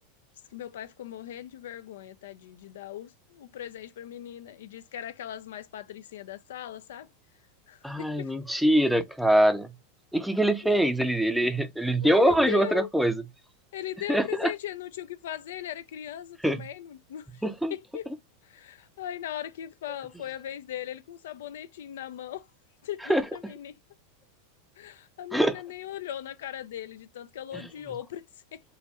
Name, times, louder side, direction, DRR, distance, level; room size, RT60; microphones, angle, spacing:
voice 1, 0.5-7.1 7.7-8.3 10.6-10.8 12.0-12.9 13.7-17.4 17.7-18.1 18.4-22.5 22.8-23.8 24.8-28.2 28.5-28.6, left 11 dB, 75° left, 0.3 m, -39 dB
voice 2, 7.8-9.7 10.1-13.2 14.1-14.5 16.4-16.6 17.4-17.7 23.1-23.2 25.3-25.6, right 1 dB, ahead, 0.5 m, -23 dB
3.1 x 2.2 x 2.8 m
hypercardioid pair, 100°, 0 cm